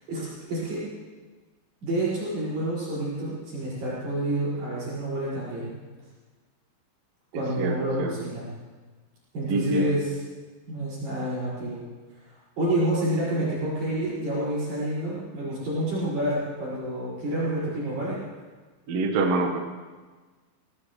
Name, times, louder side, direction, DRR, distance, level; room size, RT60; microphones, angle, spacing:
voice 1, 0.1-0.8 1.8-5.7 7.4-8.5 9.3-10.1 10.7-11.8 12.6-18.2, right 1 dB, 50° right, -9 dB, 7.4 m, -28 dB
voice 2, 7.3-8.3 9.5-9.9 18.9-19.6, right 3 dB, 65° right, 2 dB, 1.5 m, -26 dB
24.0 x 18.0 x 3.3 m, 1.4 s
omnidirectional pair, 5.3 m